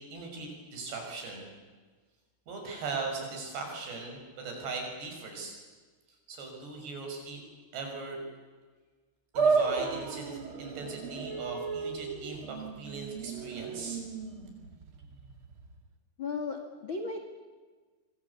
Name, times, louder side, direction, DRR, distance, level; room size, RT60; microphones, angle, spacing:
voice 1, 0.1-1.5 2.5-5.5 6.3-7.4 7.7-8.2 9.3-14.0, right 3 dB, 60° right, 2 dB, 8.2 m, -39 dB
sound 1, 9.3-15.8, right 5 dB, 80° right, 1.1 m, -33 dB
voice 2, 16.2-17.3, left 4 dB, 50° left, 4 dB, 1.5 m, -35 dB
26.0 x 25.0 x 8.4 m, 1.4 s
omnidirectional pair, 5.7 m